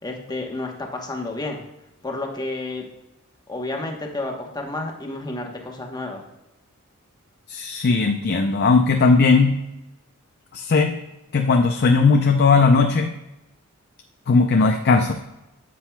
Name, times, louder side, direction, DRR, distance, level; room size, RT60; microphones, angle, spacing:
voice 1, 0.0-1.6 2.0-2.9 3.5-6.2, left 2 dB, 20° left, 2 dB, 1.0 m, -30 dB
voice 2, 7.5-9.6 10.5-11.0 11.3-13.1 14.3-15.2, left 4 dB, 50° left, 4 dB, 0.5 m, -17 dB
10.0 x 7.6 x 2.2 m, 0.93 s
head